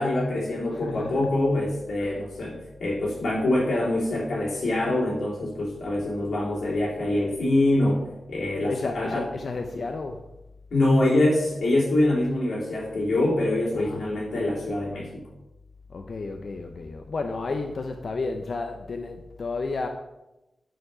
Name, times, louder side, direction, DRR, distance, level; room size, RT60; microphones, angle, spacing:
voice 1, 0.0-9.2 10.7-15.3, left 1 dB, 85° left, -5 dB, 3.1 m, -25 dB
voice 2, 0.7-1.3 2.0-2.2 8.6-10.2 13.8-14.0 15.9-19.9, left 3 dB, 50° left, 4 dB, 0.6 m, -32 dB
9.1 x 4.7 x 5.6 m, 0.97 s
wide cardioid pair, 160°, 0 cm